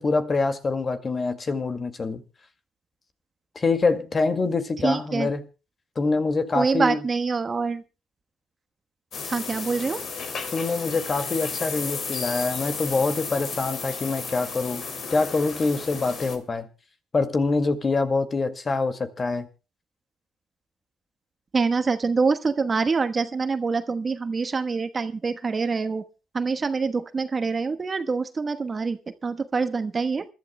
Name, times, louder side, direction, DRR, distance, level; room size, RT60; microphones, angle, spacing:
voice 1, 0.0-2.2 3.6-5.5 6.0-7.0 10.5-14.8 15.1-16.7 17.1-19.5, left 3 dB, 35° left, 2.1 m, -25 dB
voice 2, 4.8-5.3 6.5-7.8 9.2-10.0 21.5-26.0 26.3-30.3, right 4 dB, 35° right, 1.1 m, -25 dB
sound 1, 9.1-16.4, left 5 dB, 55° left, 2.9 m, -33 dB
27.5 x 12.0 x 2.2 m
hypercardioid pair, 60°, 0 cm